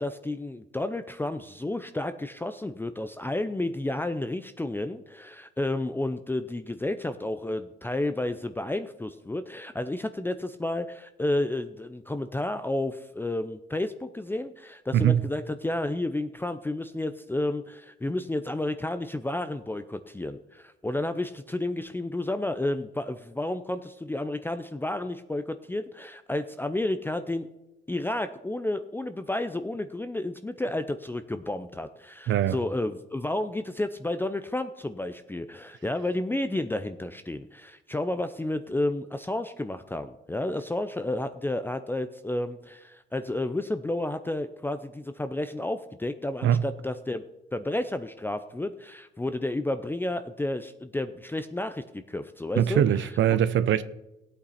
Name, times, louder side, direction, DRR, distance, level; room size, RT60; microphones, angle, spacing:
voice 1, 0.0-27.5 27.9-47.2 47.5-53.1, left 1 dB, 10° left, 0.6 m, -31 dB
voice 2, 14.9-15.3 32.3-32.6 46.4-46.6 52.6-53.8, right 10 dB, 70° right, 0.7 m, -22 dB
15.5 x 8.7 x 4.3 m
cardioid pair, 90°, 20 cm